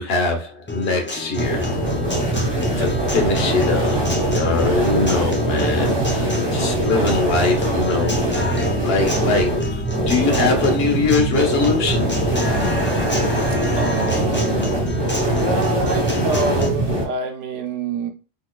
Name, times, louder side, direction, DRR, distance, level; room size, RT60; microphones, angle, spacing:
voice 1, 0.0-1.8 2.4-2.5 2.8-12.1, left 3 dB, 55° left, 1.1 m, -22 dB
Guitar, 0.7-16.7, left 2 dB, 15° left, 0.4 m, -30 dB
sound 1, 1.3-17.0, right 1 dB, 25° right, 1.4 m, -22 dB
voice 2, 13.7-15.0 15.3-18.1, right 5 dB, 70° right, 1.0 m, -27 dB
4.1 x 3.2 x 2.3 m
omnidirectional pair, 1.3 m